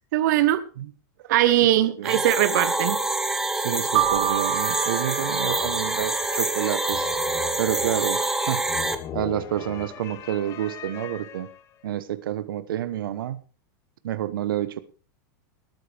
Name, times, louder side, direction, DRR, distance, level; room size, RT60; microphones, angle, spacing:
voice 1, 0.1-0.6 1.3-3.0, right 14 dB, 55° right, 1.0 m, -20 dB
voice 2, 1.8-2.1 3.5-7.1 7.6-8.2 8.5-8.6 9.1-11.5 11.8-13.4 14.0-14.8, right 11 dB, 85° right, 1.1 m, -29 dB
sound 1, 2.0-8.9, right 2 dB, 5° right, 0.8 m, -26 dB
Keyboard (musical), 3.9-6.5, right 14 dB, 30° right, 2.1 m, -28 dB
sound 2, 4.0-11.8, left 10 dB, 25° left, 0.9 m, -40 dB
19.0 x 9.5 x 3.5 m
supercardioid pair, 165°, 11 cm